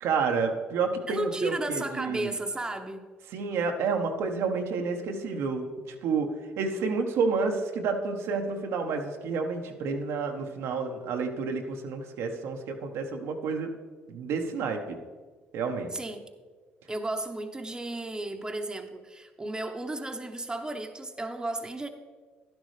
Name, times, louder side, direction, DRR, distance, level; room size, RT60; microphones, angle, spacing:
voice 1, 0.0-2.3 3.3-6.3 6.6-13.7 14.1-15.0 15.5-15.9, right 4 dB, 75° right, 3 dB, 1.0 m, -30 dB
voice 2, 1.1-3.0 15.9-16.3 16.9-21.9, right 2 dB, 15° right, 5 dB, 1.0 m, -34 dB
11.5 x 10.5 x 3.3 m, 1.4 s
supercardioid pair, 65°, 5 cm